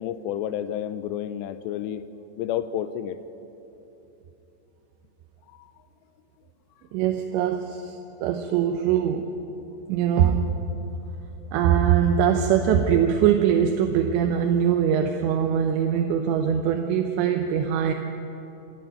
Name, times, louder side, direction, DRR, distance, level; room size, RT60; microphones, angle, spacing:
voice 1, 0.0-2.1 2.4-3.2 5.5-5.7 11.4-11.5, left 10 dB, 85° left, 12 dB, 2.8 m, -30 dB
voice 2, 6.9-8.0 8.2-9.3 9.9-10.6 11.5-17.9, right 8 dB, 90° right, 4 dB, 3.2 m, -22 dB
26.5 x 11.0 x 9.0 m, 3.0 s
omnidirectional pair, 5.0 m